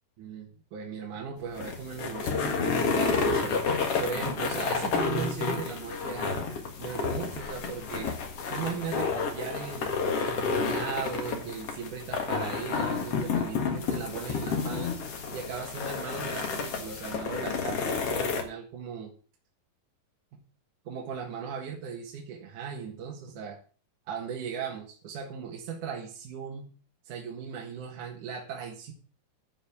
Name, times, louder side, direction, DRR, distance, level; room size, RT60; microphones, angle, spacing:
voice 1, 0.2-3.6 4.0-6.5 6.8-8.2 8.5-9.9 10.2-15.0 15.3-19.1 20.3-20.4 20.9-23.6 24.1-26.7 27.0-28.9, right 6 dB, 65° right, -1 dB, 3.0 m, -37 dB
sound 1, 1.4-18.4, left 5 dB, 50° left, 2.3 m, -30 dB
12.0 x 5.6 x 7.1 m, 0.40 s
omnidirectional pair, 4.0 m